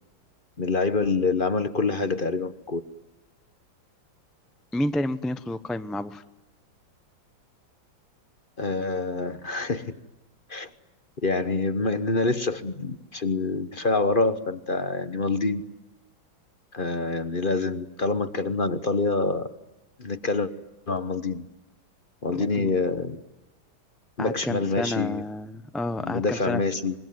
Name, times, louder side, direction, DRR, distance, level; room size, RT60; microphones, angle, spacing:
voice 1, 0.6-2.8 8.6-9.9 10.5-10.7 11.2-15.6 16.7-19.5 20.0-20.5 20.9-21.4 22.2-23.2 24.2-25.2 26.0-26.9, left 3 dB, 35° left, 12 dB, 1.0 m, -26 dB
voice 2, 4.7-6.2 22.3-22.7 24.2-26.6, left 1 dB, ahead, 11 dB, 0.4 m, -30 dB
25.5 x 23.0 x 9.5 m, 0.99 s
omnidirectional pair, 2.2 m